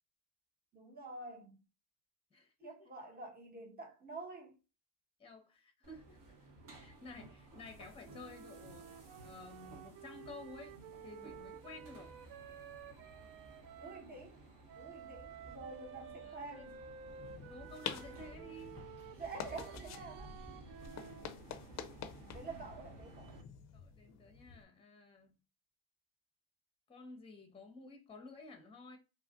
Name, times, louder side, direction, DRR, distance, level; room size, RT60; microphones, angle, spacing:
voice 1, 0.7-1.6 2.6-4.5 13.8-14.4 14.7-16.8 19.1-20.3 20.9-21.1 22.3-23.4, right 3 dB, 20° right, 1.0 m, -48 dB
voice 2, 2.3-2.7 5.2-10.8 11.0-12.1 16.2-16.7 17.4-18.9 21.1-21.3 23.7-25.4 26.9-29.0, left 3 dB, 15° left, 0.8 m, -53 dB
sound 1, 5.8-23.4, right 2 dB, 45° right, 1.0 m, -56 dB
sound 2, 8.0-14.1 14.7-21.3, right 8 dB, 65° right, 0.6 m, -53 dB
sound 3, 17.1-24.6, left 8 dB, 40° left, 0.4 m, -49 dB
2.9 x 2.4 x 2.3 m
supercardioid pair, 75°, 45 cm